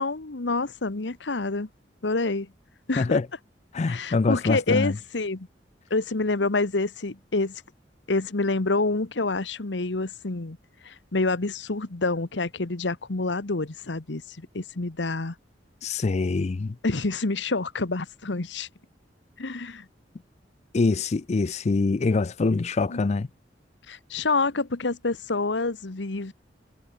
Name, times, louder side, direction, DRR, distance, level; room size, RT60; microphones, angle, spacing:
voice 1, 0.0-1.7 2.0-2.5 2.9-3.2 3.9-5.5 5.9-7.6 8.1-10.6 10.8-15.3 16.8-18.7 19.4-19.9 22.9-23.0 23.9-26.3, left 3 dB, 75° left, 1.2 m, -27 dB
voice 2, 3.7-5.0 15.8-16.8 20.7-23.3, left 3 dB, 40° left, 0.4 m, -24 dB
head